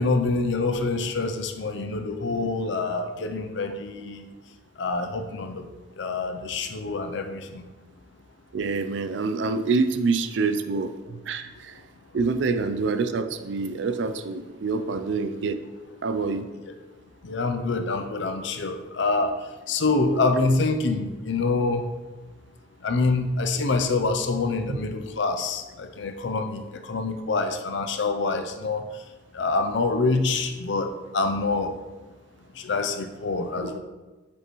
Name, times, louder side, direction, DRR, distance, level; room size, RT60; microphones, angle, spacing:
voice 1, 0.0-4.3 4.8-5.7 5.9-7.6 16.5-16.6 17.2-21.8 22.8-31.8 32.5-33.8, left 3 dB, 70° left, 6 dB, 0.6 m, -26 dB
voice 2, 8.5-11.7 12.1-15.6 16.0-16.5 33.6-33.7, right 4 dB, 70° right, 10 dB, 0.4 m, -26 dB
6.3 x 5.4 x 3.1 m, 1.2 s
head